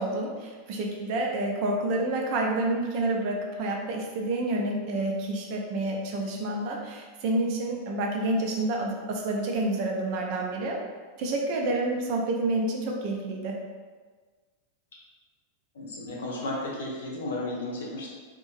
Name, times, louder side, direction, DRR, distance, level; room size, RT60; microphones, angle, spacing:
voice 1, 0.0-10.8 11.2-13.6, right 2 dB, 45° right, 0 dB, 0.5 m, -28 dB
voice 2, 15.7-18.1, left 1 dB, 65° left, -3 dB, 0.6 m, -33 dB
2.8 x 2.6 x 2.5 m, 1.4 s
figure-of-eight pair, 90°, 0 cm